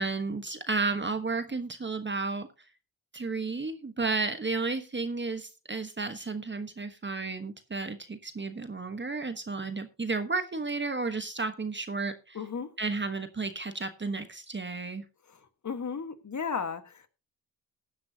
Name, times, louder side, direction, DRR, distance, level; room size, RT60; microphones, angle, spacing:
voice 1, 0.0-2.5 3.1-12.4 12.8-15.0, right 3 dB, 25° right, 1.2 m, -32 dB
voice 2, 12.3-12.7 15.6-17.1, left 6 dB, 40° left, 1.6 m, -34 dB
16.0 x 10.0 x 2.8 m
cardioid pair, 60°, 42 cm